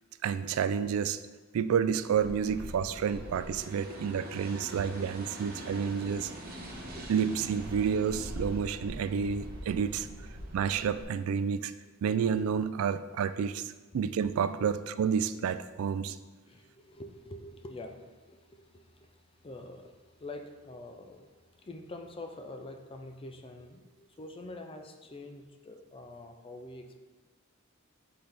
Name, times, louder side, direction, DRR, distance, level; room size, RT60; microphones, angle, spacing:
voice 1, 0.2-1.2 1.5-6.3 7.1-10.1 10.5-11.7 12.0-16.2, right 7 dB, 80° right, 13 dB, 0.3 m, -30 dB
sound 1, 2.1-11.0, right 1 dB, 45° right, 1.3 m, -43 dB
voice 2, 3.1-3.5 3.9-4.0 6.9-7.2 10.3-10.7 14.5-14.7 16.5-27.0, left 2 dB, 25° left, 5 dB, 0.5 m, -47 dB
7.8 x 4.0 x 3.4 m, 1.2 s
head